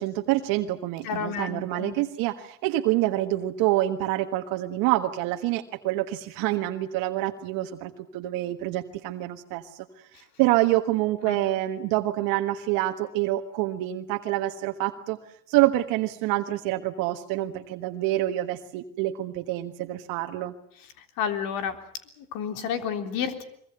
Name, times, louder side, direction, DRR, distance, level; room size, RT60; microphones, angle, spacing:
voice 1, 0.0-9.9 10.4-15.2 15.5-20.5, right 16 dB, 70° right, 5 dB, 1.6 m, -27 dB
voice 2, 1.0-1.9 11.3-11.4 21.2-21.8 22.2-23.4, left 7 dB, 70° left, 7 dB, 3.7 m, -30 dB
23.5 x 22.5 x 7.9 m, 0.66 s
supercardioid pair, 90°, 35 cm